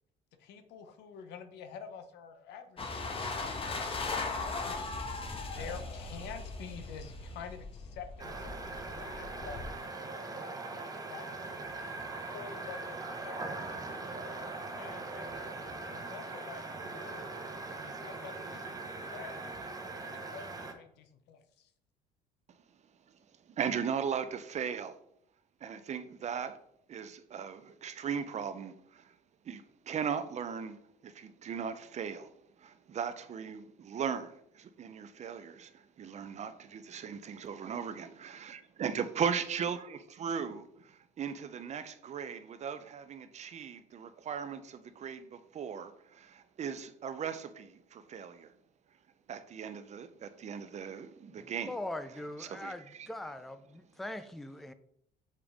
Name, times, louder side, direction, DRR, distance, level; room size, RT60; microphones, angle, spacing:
voice 1, 0.4-3.2 4.1-4.8 5.3-10.4 11.0-11.3 11.8-13.5 13.8-14.0 14.8-15.6 15.9-17.2 17.7-18.8 19.1-19.5 20.0-21.7, left 7 dB, 85° left, 0.9 m, -48 dB
sound 1, 2.8-9.7, left 3 dB, 35° left, 1.1 m, -38 dB
sound 2, 8.2-20.7, right 3 dB, 20° right, 1.0 m, -41 dB
voice 2, 23.5-25.0 25.6-26.6 26.9-29.1 29.4-32.3 32.6-48.5 49.3-51.8 52.4-53.1, right 7 dB, 40° right, 0.6 m, -38 dB
voice 3, 51.4-54.7, left 1 dB, ahead, 0.4 m, -41 dB
6.6 x 5.2 x 3.6 m
cardioid pair, 110°, 17 cm